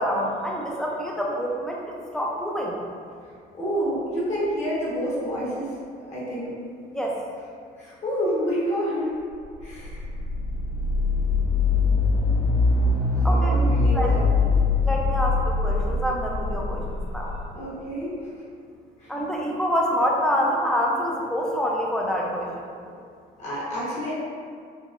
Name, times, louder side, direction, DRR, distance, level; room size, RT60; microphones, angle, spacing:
voice 1, 0.0-2.7 6.9-7.2 13.2-13.6 13.9-14.2 14.4-14.5 14.8-17.4 19.1-22.5, equal, 5° left, -2 dB, 0.4 m, -26 dB
voice 2, 3.5-6.5 7.8-9.1 9.6-10.1 13.1-14.2 17.5-18.4 19.0-19.1 23.4-24.1, equal, 45° left, -8 dB, 1.1 m, -29 dB
sound 1, 9.4-17.4, left 3 dB, 90° left, 1.2 m, -22 dB
3.9 x 2.0 x 2.4 m, 2.2 s
cardioid pair, 110°, 17 cm